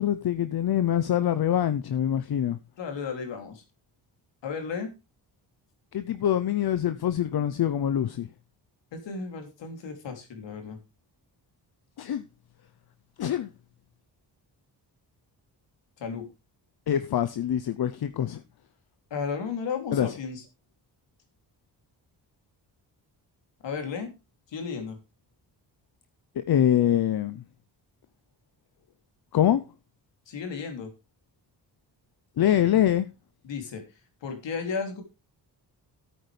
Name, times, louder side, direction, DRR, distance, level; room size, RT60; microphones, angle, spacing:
voice 1, 0.0-2.6 5.9-8.3 12.0-12.2 13.2-13.5 16.9-18.4 19.9-20.1 26.4-27.4 29.3-29.6 32.4-33.1, left 10 dB, 60° left, 0.8 m, -24 dB
voice 2, 2.8-3.6 4.4-4.9 8.9-10.8 16.0-16.3 19.1-20.4 23.6-24.1 24.5-25.0 30.3-30.9 33.4-33.8 34.2-35.0, left 5 dB, 85° left, 3.2 m, -34 dB
13.5 x 8.8 x 3.4 m
cardioid pair, 95°, 43 cm